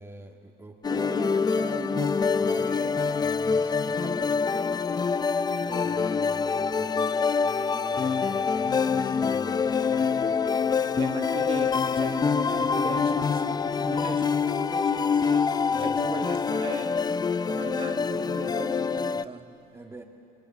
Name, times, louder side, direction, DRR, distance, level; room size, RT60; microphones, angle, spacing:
voice 1, 0.0-1.3 2.4-5.2 5.7-10.5 15.7-16.0 19.7-20.0, right 2 dB, 15° right, 1.8 m, -44 dB
sound 1, 0.8-19.2, left 5 dB, 25° left, 0.6 m, -25 dB
voice 2, 1.0-2.3 11.0-15.5 15.8-17.0 17.4-19.6, right 5 dB, 30° right, 1.8 m, -38 dB
28.5 x 23.0 x 8.8 m
cardioid pair, 110°, 17 cm